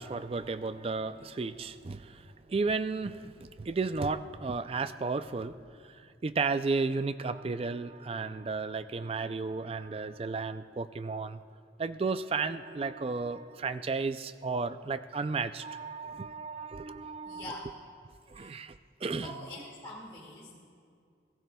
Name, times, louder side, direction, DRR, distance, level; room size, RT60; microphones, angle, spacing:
voice 1, 0.0-5.6 5.9-11.4 11.8-17.4 18.3-19.4, right 4 dB, 30° right, 12 dB, 0.3 m, -33 dB
voice 2, 17.2-17.7 18.3-18.6 19.2-20.6, left 1 dB, 25° left, -6 dB, 1.7 m, -44 dB
27.0 x 18.0 x 2.3 m, 2.3 s
head